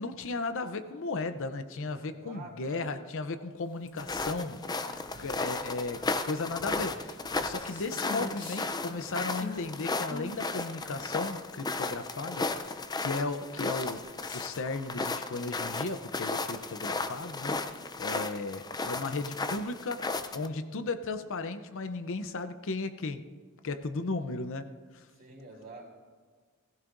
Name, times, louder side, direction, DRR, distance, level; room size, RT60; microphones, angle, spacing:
voice 1, 0.0-7.2 7.4-14.1 14.3-23.2 23.6-24.7 24.9-25.0, left 3 dB, 60° left, 9 dB, 0.6 m, -35 dB
voice 2, 2.1-3.0 4.8-5.4 25.2-25.8, right 3 dB, 40° right, -2 dB, 3.3 m, -48 dB
sound 1, 3.7-14.9, left 2 dB, 40° left, 2.1 m, -46 dB
sound 2, 4.0-20.5, left 3 dB, 20° left, 0.5 m, -35 dB
18.0 x 16.0 x 2.6 m, 1.5 s
head